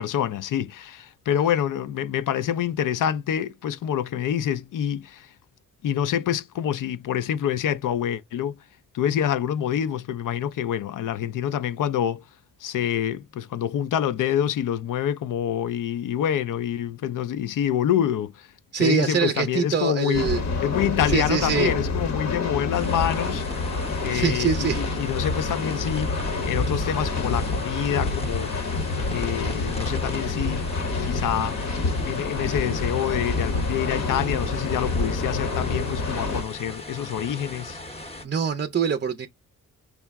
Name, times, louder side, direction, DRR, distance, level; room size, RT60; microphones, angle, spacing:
voice 1, 0.0-5.3 5.8-8.5 8.9-12.2 12.6-18.5 18.8-20.3 20.6-23.7 24.0-26.1 26.5-28.5 29.1-30.6 31.0-31.6 32.0-37.8, left 9 dB, 70° left, 0.5 m, -26 dB
voice 2, 18.7-20.4 21.1-21.7 24.1-24.8 38.2-39.3, right 6 dB, 35° right, 0.5 m, -24 dB
sound 1, 20.1-36.4, left 3 dB, 55° left, 0.8 m, -27 dB
sound 2, 22.7-38.2, left 1 dB, 20° left, 0.7 m, -37 dB
4.7 x 2.0 x 3.4 m
cardioid pair, 75°, 33 cm